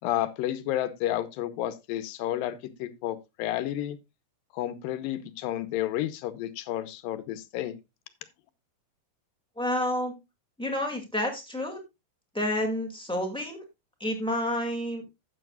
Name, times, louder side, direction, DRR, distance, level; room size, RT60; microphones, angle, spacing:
voice 1, 0.0-4.0 4.5-7.7, left 13 dB, 85° left, 2.5 m, -31 dB
voice 2, 9.6-10.1 10.6-11.8 12.3-13.6 14.0-15.0, left 1 dB, ahead, 1.1 m, -29 dB
12.5 x 8.6 x 2.3 m
omnidirectional pair, 4.0 m